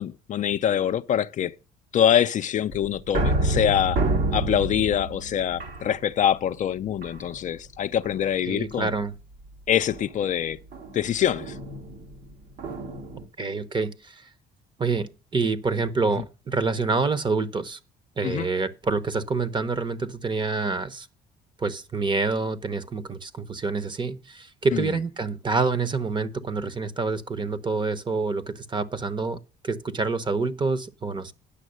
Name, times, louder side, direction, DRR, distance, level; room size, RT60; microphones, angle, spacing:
voice 1, 0.0-1.5 1.9-4.0 4.3-8.9 9.7-10.6 10.9-11.5 18.2-18.5 24.7-24.9, left 9 dB, 45° left, 0.5 m, -24 dB
sound 1, 2.7-6.4 7.0-7.6 8.0-8.4 9.9-13.3, right 2 dB, 70° right, 1.8 m, -29 dB
voice 2, 8.4-9.1 13.4-14.2 14.8-17.8 18.2-21.1 21.6-31.3, right 4 dB, 30° right, 0.9 m, -27 dB
10.0 x 6.3 x 6.3 m
cardioid pair, 110°, 17 cm